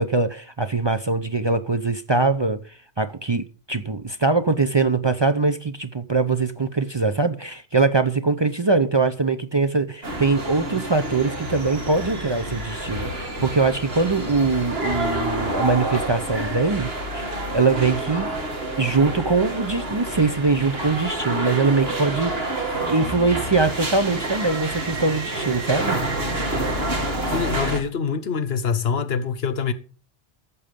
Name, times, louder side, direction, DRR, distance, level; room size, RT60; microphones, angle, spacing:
voice 1, 0.0-18.3 18.8-22.6 22.9-26.0, right 3 dB, 35° right, 0.5 m, -22 dB
sound 1, 10.0-27.8, right 1 dB, 75° right, 2.4 m, -28 dB
voice 2, 27.3-29.7, left 6 dB, 75° left, 1.2 m, -25 dB
14.0 x 7.0 x 5.2 m
omnidirectional pair, 1.1 m